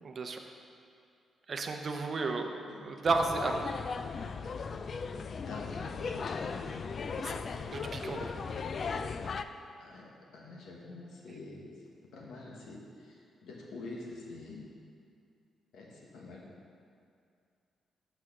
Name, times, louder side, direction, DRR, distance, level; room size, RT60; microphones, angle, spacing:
voice 1, 1.5-2.5 2.8-3.6 7.2-7.4 7.7-8.3, right 3 dB, 45° right, 4 dB, 0.7 m, -32 dB
sound 1, 3.0-9.4, left 5 dB, 45° left, 0.3 m, -37 dB
voice 2, 5.2-6.9 9.8-11.7 12.1-14.6 15.7-16.4, left 2 dB, 90° left, -2 dB, 1.4 m, -47 dB
6.2 x 6.2 x 6.0 m, 2.4 s
cardioid pair, 115°, 0 cm